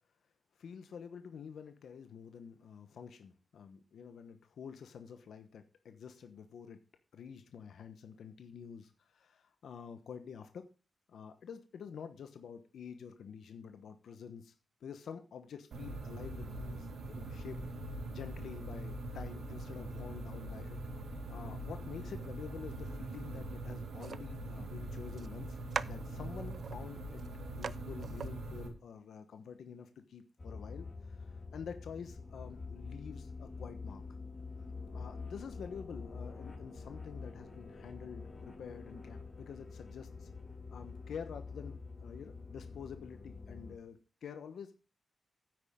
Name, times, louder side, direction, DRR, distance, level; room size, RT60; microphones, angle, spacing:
voice 1, 0.6-6.8 7.1-10.7 11.1-14.5 14.8-17.7 18.1-20.8 21.3-25.6 25.9-27.2 27.5-34.2 34.9-40.3 40.7-44.8, left 7 dB, 90° left, 9 dB, 1.1 m, -48 dB
sound 1, 15.7-28.7, right 1 dB, 80° right, 2.4 m, -42 dB
sound 2, 24.0-24.2 25.2-25.3 25.7-26.8 27.2-27.3 27.6-27.8 28.0-28.3, right 6 dB, 60° right, 0.5 m, -40 dB
sound 3, 30.4-43.7, left 4 dB, 35° left, 3.8 m, -46 dB
9.7 x 8.9 x 3.7 m, 0.34 s
wide cardioid pair, 120°, 0 cm